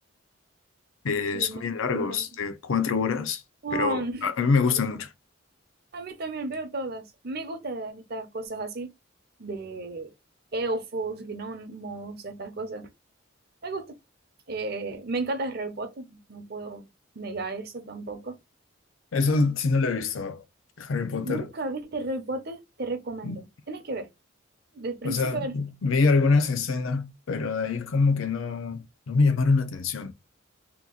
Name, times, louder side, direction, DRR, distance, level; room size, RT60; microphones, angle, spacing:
voice 1, 1.0-3.4 3.7-5.1 19.1-20.4 20.8-21.5 23.2-23.4 25.0-30.1, left 4 dB, 80° left, 0.5 m, -25 dB
voice 2, 1.9-2.2 3.6-4.3 5.9-8.9 9.4-10.1 10.5-12.9 13.6-14.0 14.5-16.9 17.2-18.4 21.3-24.1 24.7-25.5, right 2 dB, 50° right, 0.7 m, -33 dB
2.9 x 2.4 x 3.7 m
head